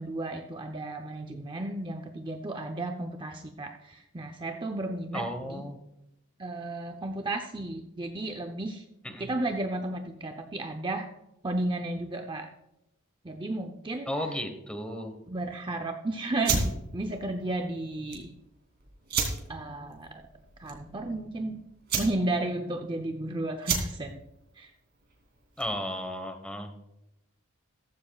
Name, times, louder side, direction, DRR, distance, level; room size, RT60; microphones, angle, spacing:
voice 1, 0.0-5.6 6.4-8.8 9.2-11.1 11.4-12.5 13.2-14.1 15.3-18.3 19.5-20.3 20.6-21.6 22.0-24.2 24.6-24.7, right 2 dB, 20° right, 5 dB, 0.6 m, -33 dB
voice 2, 5.1-5.8 9.0-9.3 14.1-15.1 25.6-26.8, equal, 5° left, 6 dB, 1.2 m, -34 dB
sound 1, 16.4-25.9, right 4 dB, 45° right, 2.8 m, -34 dB
15.5 x 14.5 x 2.4 m, 0.88 s
head